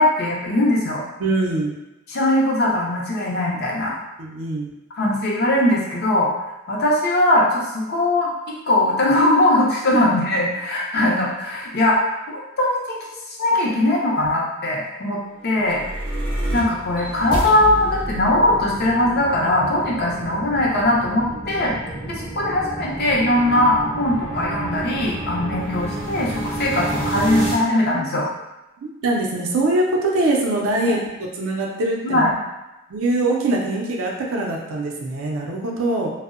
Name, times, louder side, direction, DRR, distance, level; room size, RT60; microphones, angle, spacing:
voice 1, 0.0-1.0 2.1-3.9 4.9-6.3 6.7-8.3 8.7-13.0 13.3-15.8 16.5-21.7 22.1-28.3 30.9-31.0 32.0-32.4, left 1 dB, 45° left, -3 dB, 0.5 m, -20 dB
voice 2, 1.2-1.7 4.2-4.7 28.8-31.0 31.4-32.2 32.9-36.1, right 2 dB, 75° right, -1 dB, 0.4 m, -22 dB
sound 1, 15.5-27.5, right 1 dB, 25° right, 0.5 m, -29 dB
2.6 x 2.0 x 2.4 m, 1.0 s
head